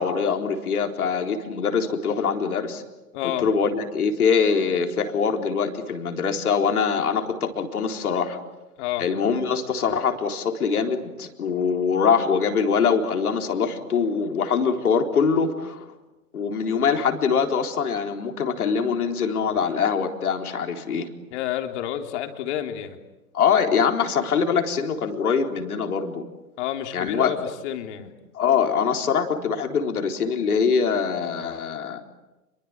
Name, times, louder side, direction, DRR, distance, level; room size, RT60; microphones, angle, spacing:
voice 1, 0.0-2.8 3.2-8.4 9.0-15.8 16.3-21.1 23.3-26.2 26.9-27.3 28.0-28.1 28.3-32.0, left 6 dB, 75° left, 4 dB, 4.1 m, -23 dB
voice 2, 3.1-3.5 8.8-9.1 21.3-23.0 26.6-27.4 27.6-28.1, left 11 dB, 50° left, 5 dB, 3.6 m, -29 dB
29.0 x 23.0 x 8.9 m, 1.1 s
hypercardioid pair, 115°, 45 cm